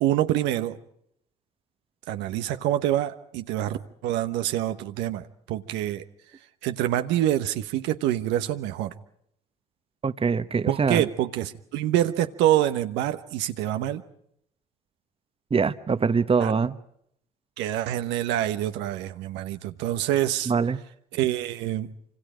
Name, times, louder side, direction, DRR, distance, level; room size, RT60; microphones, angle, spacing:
voice 1, 0.0-0.8 2.1-6.0 6.6-8.9 10.7-14.0 16.4-16.5 17.6-20.5 21.1-21.9, right 12 dB, 85° right, 9 dB, 1.1 m, -26 dB
voice 2, 10.0-11.0 15.5-16.8 20.5-20.8, right 5 dB, 30° right, 13 dB, 1.2 m, -23 dB
26.0 x 26.0 x 5.0 m, 0.73 s
supercardioid pair, 60°, 18 cm